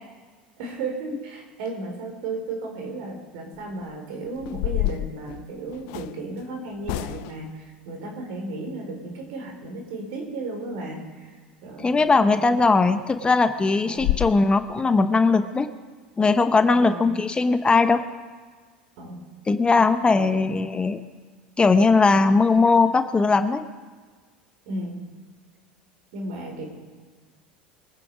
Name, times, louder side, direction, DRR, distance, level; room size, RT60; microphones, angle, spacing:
voice 1, 0.6-11.3 11.6-12.0 12.3-12.9 13.9-14.2 16.9-17.2 19.0-19.2 20.1-20.8 24.6-25.1 26.1-26.7, right 2 dB, 70° right, 2 dB, 4.9 m, -34 dB
sound 1, 3.6-3.8 4.4-6.2 6.8-7.5 12.0-12.2 12.6-12.7 13.1-13.2 13.6-13.7 14.0-14.3, left 18 dB, 65° left, 0.5 m, -28 dB
voice 2, 11.8-15.7 16.2-18.0 19.5-21.0 21.6-23.7, left 3 dB, 20° left, 10 dB, 0.9 m, -19 dB
23.0 x 9.9 x 5.0 m, 1.5 s
hypercardioid pair, 85°, 5 cm